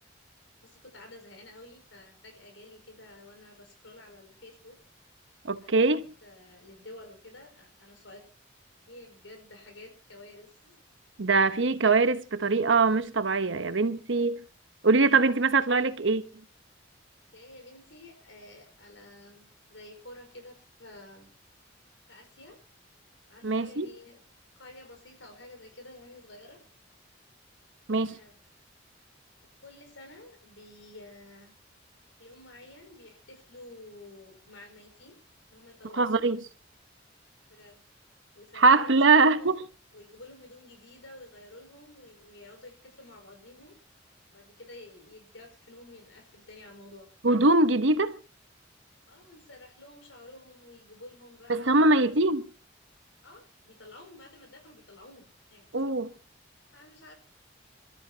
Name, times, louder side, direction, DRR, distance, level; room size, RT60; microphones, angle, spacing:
voice 1, 0.6-4.8 5.6-5.9 6.2-8.2 8.8-10.7 17.2-21.3 22.1-22.6 23.3-24.2 24.6-26.6 28.1-28.4 29.6-31.6 32.2-35.2 35.5-36.3 37.5-37.9 38.3-39.6 39.9-43.8 44.3-47.1 49.1-52.2 53.2-55.7 56.7-57.1, left 2 dB, 85° left, 5.2 m, -50 dB
voice 2, 5.4-6.0 11.2-14.4 14.8-16.2 23.4-23.9 27.9-28.2 35.9-36.4 38.6-39.6 47.2-48.2 51.5-52.5 55.7-56.1, right 3 dB, 75° right, 1.1 m, -22 dB
27.0 x 13.0 x 2.9 m
head